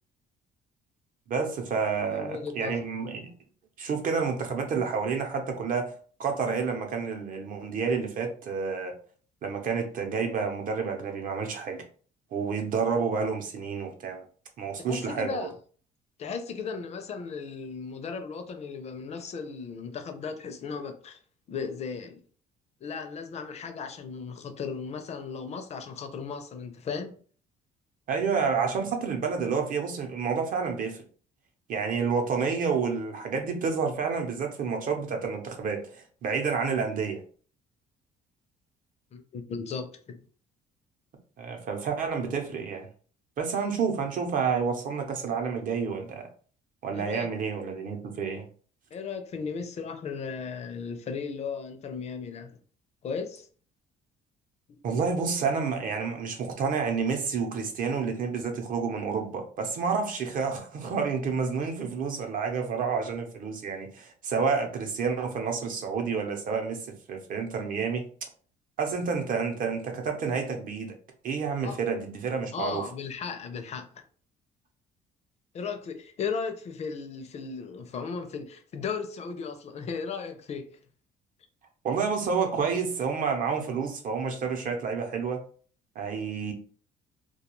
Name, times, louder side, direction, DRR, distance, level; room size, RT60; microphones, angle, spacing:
voice 1, 1.3-3.3 3.8-5.9 6.2-8.9 9.4-11.8 12.3-14.2 14.6-15.5 28.1-31.0 31.7-37.2 41.4-42.9 43.4-46.3 46.8-48.5 54.8-68.1 68.8-71.0 71.2-72.8 81.8-85.4 86.0-86.5, right 5 dB, 55° right, 0.7 m, -29 dB
voice 2, 2.1-2.7 14.8-15.5 16.2-21.2 21.5-22.2 22.8-27.2 39.1-40.2 46.9-47.3 48.9-52.6 53.0-53.5 54.7-54.8 71.6-71.8 72.5-74.0 75.5-80.7, left 5 dB, 40° left, 0.5 m, -36 dB
2.3 x 2.2 x 3.0 m
cardioid pair, 110°, 17 cm